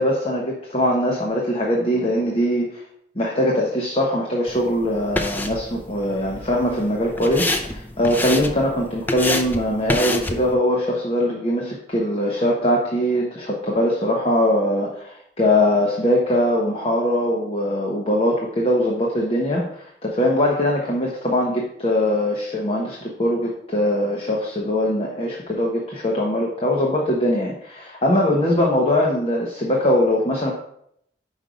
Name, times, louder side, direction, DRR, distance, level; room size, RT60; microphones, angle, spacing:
voice 1, 0.0-2.8 3.1-30.5, left 1 dB, 30° left, -2 dB, 1.0 m, -21 dB
sound 1, 4.5-10.5, left 1 dB, 10° left, 0.5 m, -28 dB
5.4 x 5.3 x 5.0 m, 0.72 s
head